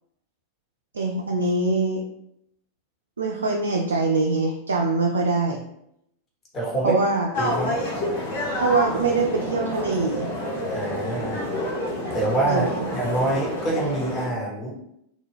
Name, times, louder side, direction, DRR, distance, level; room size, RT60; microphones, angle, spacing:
voice 1, 0.9-2.0 3.2-5.6 6.8-7.3 8.6-10.3 12.5-12.9, right 3 dB, 70° right, 0 dB, 0.3 m, -23 dB
voice 2, 6.5-6.9 7.4-7.8 10.7-11.4 12.1-14.7, right 2 dB, 25° left, -3 dB, 1.0 m, -26 dB
sound 1, 7.3-14.3, left 1 dB, 55° left, 0.8 m, -29 dB
2.3 x 2.2 x 3.3 m, 0.78 s
figure-of-eight pair, 90°, 0 cm